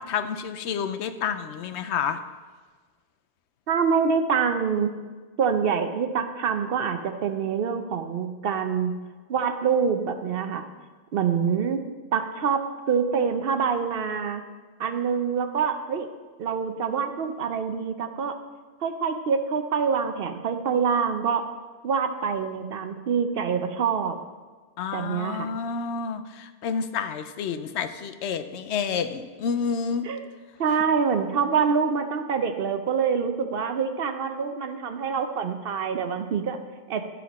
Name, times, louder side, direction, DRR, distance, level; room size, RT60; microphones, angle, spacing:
voice 1, 0.0-2.2 24.8-30.1, left 6 dB, 85° left, 10 dB, 0.9 m, -29 dB
voice 2, 3.7-4.9 5.4-8.9 9.3-10.7 11.1-11.8 12.1-14.4 14.8-16.1 16.4-18.4 18.8-21.5 21.8-24.2 24.9-25.5 30.0-30.2 30.6-36.6 36.9-37.0, right 6 dB, 65° right, 8 dB, 0.8 m, -25 dB
11.5 x 5.8 x 4.1 m, 1.4 s
omnidirectional pair, 1.1 m